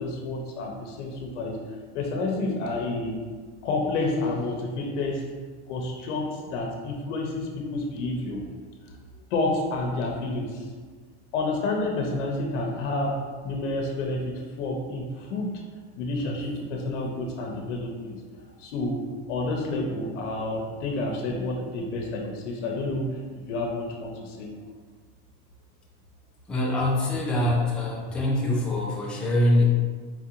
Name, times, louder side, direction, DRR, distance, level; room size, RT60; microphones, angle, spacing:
voice 1, 0.0-1.6 1.9-3.2 3.6-5.4 5.7-8.4 8.9-9.0 9.3-10.7 11.3-15.6 16.0-18.2 18.6-23.2 23.5-24.5, left 2 dB, 85° left, 1 dB, 0.7 m, -29 dB
voice 2, 26.5-29.6, left 1 dB, 5° left, -4 dB, 0.3 m, -24 dB
4.2 x 2.5 x 2.8 m, 1.5 s
supercardioid pair, 135°, 35 cm